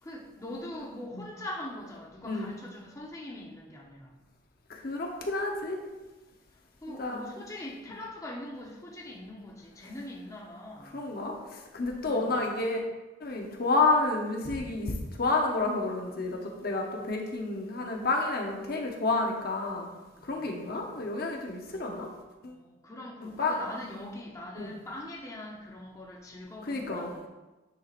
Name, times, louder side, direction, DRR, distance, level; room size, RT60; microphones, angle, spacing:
voice 1, 0.0-4.1 6.8-11.0 12.0-12.3 20.1-21.3 22.5-27.3, left 1 dB, 15° left, -2 dB, 0.7 m, -42 dB
voice 2, 4.7-5.8 6.9-7.3 10.9-12.8 13.2-19.9 20.2-22.1 22.4-22.6 23.2-23.6 24.6-24.7 26.6-27.1, left 3 dB, 50° left, 1 dB, 0.8 m, -30 dB
9.5 x 4.6 x 2.5 m, 1.1 s
head